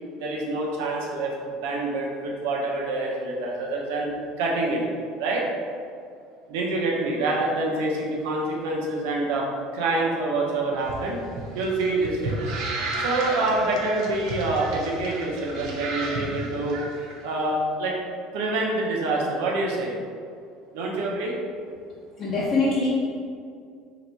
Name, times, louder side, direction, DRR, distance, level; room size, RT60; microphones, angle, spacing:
voice 1, 0.1-1.3 1.6-4.1 4.4-4.8 5.2-5.4 6.5-9.5 9.7-11.2 11.5-12.3 13.0-16.8 17.2-18.0 18.3-19.9 20.7-21.3, right 2 dB, 90° right, -2 dB, 0.7 m, -26 dB
sound 1, 10.8-17.1, right 2 dB, 50° right, 0.6 m, -32 dB
voice 2, 22.2-22.9, left 3 dB, 30° left, -7 dB, 0.5 m, -23 dB
3.0 x 2.9 x 4.5 m, 2.3 s
cardioid pair, 180°, 0 cm